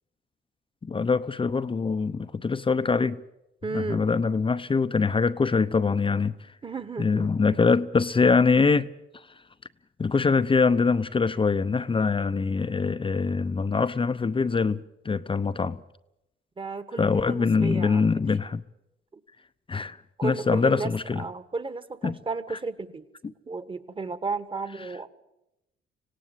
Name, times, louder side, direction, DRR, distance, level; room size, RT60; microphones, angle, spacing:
voice 1, 0.8-3.2 3.7-6.5 7.0-9.3 10.0-14.8 15.0-15.8 17.0-18.6 19.7-21.2 22.0-22.2 23.2-23.3, left 4 dB, 25° left, 0.7 m, -24 dB
voice 2, 3.6-4.0 6.6-7.3 16.6-18.1 20.2-23.1 23.5-25.1, right 3 dB, 25° right, 1.7 m, -33 dB
26.0 x 17.5 x 8.1 m
cardioid pair, 90°, 20 cm